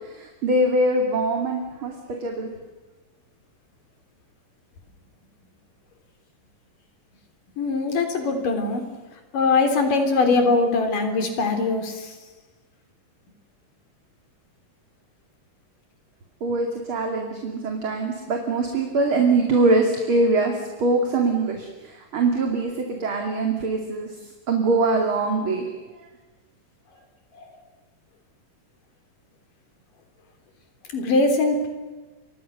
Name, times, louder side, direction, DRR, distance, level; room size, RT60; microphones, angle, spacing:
voice 1, 0.4-1.9 2.2-2.5 16.4-21.7 22.1-24.1 24.5-25.7, right 2 dB, 40° right, 2 dB, 3.1 m, -22 dB
voice 2, 7.6-8.8 9.3-12.1 30.9-31.7, left 3 dB, 75° left, 6 dB, 5.2 m, -21 dB
29.5 x 25.5 x 6.7 m, 1.3 s
omnidirectional pair, 3.9 m